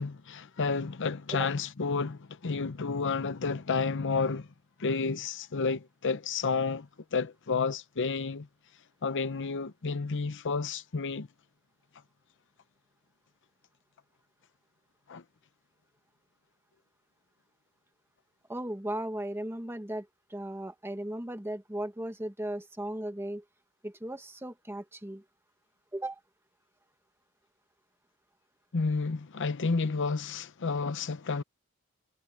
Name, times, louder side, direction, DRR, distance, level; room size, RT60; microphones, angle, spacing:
voice 1, 0.0-4.5 4.8-8.5 9.0-11.3 15.1-15.2 28.7-31.4, left 4 dB, 55° left, 0.7 m, -31 dB
voice 2, 18.5-23.4 23.8-25.2 25.9-26.2, right 1 dB, 10° right, 1.4 m, -36 dB
head